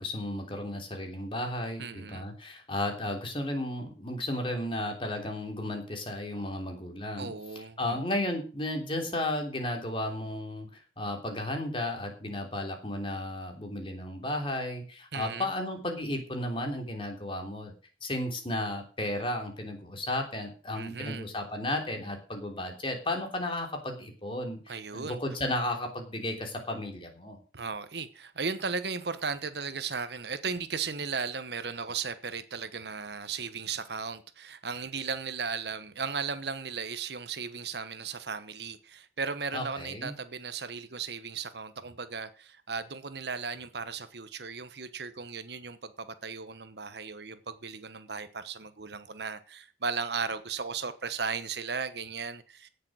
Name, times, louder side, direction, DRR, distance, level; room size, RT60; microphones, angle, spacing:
voice 1, 0.0-17.7 18.0-27.4 39.5-40.1, left 1 dB, 30° left, 3.2 m, -34 dB
voice 2, 1.8-2.3 7.2-8.0 15.1-15.5 20.7-21.3 24.7-25.2 27.5-52.7, right 5 dB, 65° right, 1.2 m, -36 dB
17.0 x 6.8 x 6.3 m
head